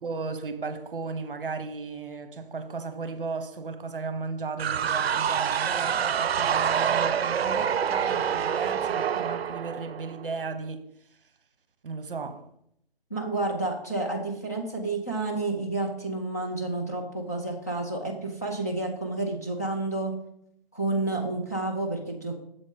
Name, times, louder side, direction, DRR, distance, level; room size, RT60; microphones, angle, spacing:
voice 1, 0.0-10.8 11.8-12.5, right 4 dB, 60° right, 0.9 m, -35 dB
sound 1, 4.6-10.4, right 8 dB, 80° right, 0.5 m, -26 dB
voice 2, 13.1-20.1 20.7-22.3, right 2 dB, 15° left, 0.5 m, -30 dB
7.1 x 4.2 x 5.1 m
hypercardioid pair, 170°, 30 cm